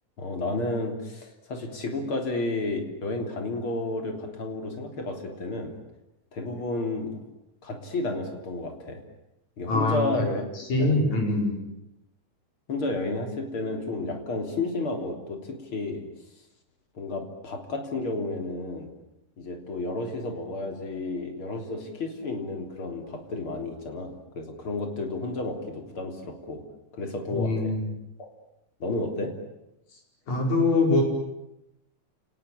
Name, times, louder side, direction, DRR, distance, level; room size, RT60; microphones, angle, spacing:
voice 1, 0.2-5.8 6.3-7.2 7.6-9.0 9.6-10.4 10.8-11.0 12.7-16.1 17.0-18.9 19.4-26.6 26.9-27.8 28.2-28.3 28.8-29.4, left 2 dB, 45° left, 4 dB, 4.1 m, -32 dB
voice 2, 9.7-10.2 10.6-11.6 27.3-27.8 30.3-31.0, left 2 dB, 75° left, 2 dB, 6.8 m, -24 dB
29.5 x 19.0 x 9.9 m, 0.88 s
omnidirectional pair, 3.3 m